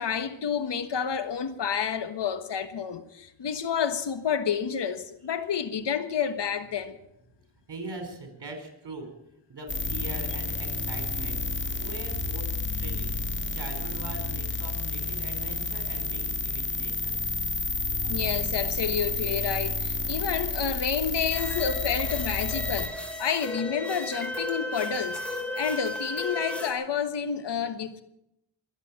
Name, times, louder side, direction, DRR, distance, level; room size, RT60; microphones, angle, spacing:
voice 1, 0.0-7.0 18.0-22.9 23.2-28.0, left 7 dB, 65° left, 1.4 m, -29 dB
voice 2, 7.7-9.1 9.5-12.5 12.7-13.2 13.5-17.2, right 2 dB, 60° right, 4.8 m, -41 dB
sound 1, 9.7-22.9, left 3 dB, 25° left, 1.6 m, -30 dB
sound 2, 21.3-26.7, left 1 dB, ahead, 3.2 m, -34 dB
22.5 x 8.1 x 7.7 m
cardioid pair, 80°, 46 cm